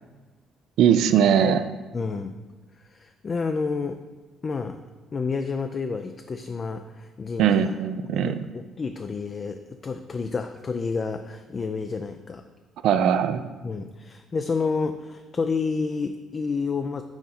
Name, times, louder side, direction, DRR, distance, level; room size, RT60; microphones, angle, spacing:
voice 1, 0.8-1.6 7.4-8.4 12.8-13.4, right 8 dB, 75° right, 10 dB, 0.3 m, -20 dB
voice 2, 1.9-2.4 2.7-4.0 4.4-4.8 5.1-7.8 8.1-12.5 13.6-17.0, left 4 dB, 40° left, 7 dB, 0.3 m, -30 dB
5.8 x 3.8 x 4.2 m, 1.3 s
supercardioid pair, 65°, 0 cm